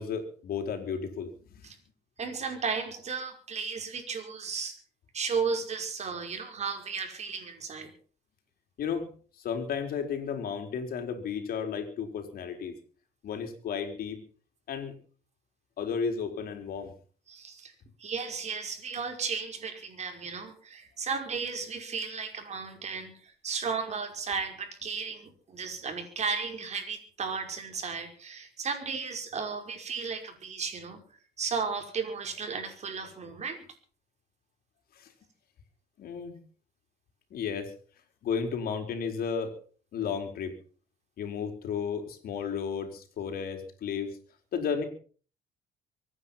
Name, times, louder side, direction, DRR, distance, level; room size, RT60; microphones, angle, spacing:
voice 1, 0.0-1.7 8.8-9.1 9.4-12.7 13.2-14.2 14.7-14.9 15.8-16.9 35.0-35.1 36.0-36.4 37.3-37.7 38.2-39.6 39.9-40.5 41.2-44.2 44.5-44.9, left 6 dB, 60° left, 6 dB, 4.5 m, -33 dB
voice 2, 2.2-4.8 5.1-7.9 17.3-17.7 18.0-31.0 31.4-33.7, right 5 dB, 40° right, 5 dB, 5.4 m, -34 dB
24.0 x 10.0 x 5.8 m, 0.43 s
cardioid pair, 110°, 17 cm